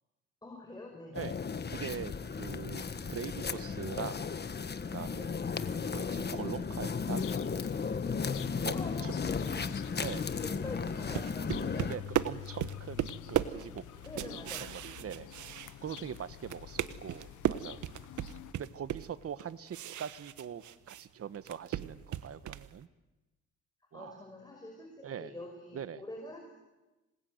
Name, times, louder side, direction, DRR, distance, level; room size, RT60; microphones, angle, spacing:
voice 1, 0.4-1.2 5.2-5.3 8.7-9.8 10.4-12.0 14.0-14.7 23.9-26.6, left 1 dB, 15° left, 1 dB, 5.5 m, -46 dB
sound 1, 1.1-12.0, left 5 dB, 35° left, 1.5 m, -35 dB
voice 2, 1.7-4.3 4.9-5.3 5.9-7.2 8.3-9.1 10.0-10.3 11.9-13.9 14.2-15.3 15.8-17.8 18.6-22.9 23.9-24.2 25.0-25.3 25.7-26.0, right 8 dB, 50° right, 14 dB, 1.3 m, -42 dB
sound 2, 6.8-18.5, left 14 dB, 80° left, 1.0 m, -48 dB
sound 3, 10.8-16.2 16.4-21.0 21.3-22.7, right 12 dB, 75° right, 1.3 m, -36 dB
27.0 x 21.0 x 9.5 m, 1.1 s
cardioid pair, 90°, 30 cm